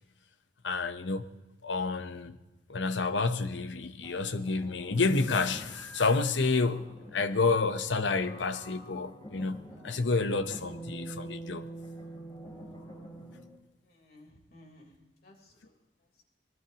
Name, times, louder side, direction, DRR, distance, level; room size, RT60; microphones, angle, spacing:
voice 1, 0.6-1.3 1.6-2.4 2.7-6.8 7.1-11.7, left 3 dB, 85° left, 0.9 m, -29 dB
sound 1, 4.0-13.6, right 1 dB, 25° left, 3.5 m, -46 dB
voice 2, 13.8-14.9 15.2-15.8 16.1-16.2, left 1 dB, 55° left, 3.8 m, -57 dB
25.0 x 19.5 x 3.0 m
head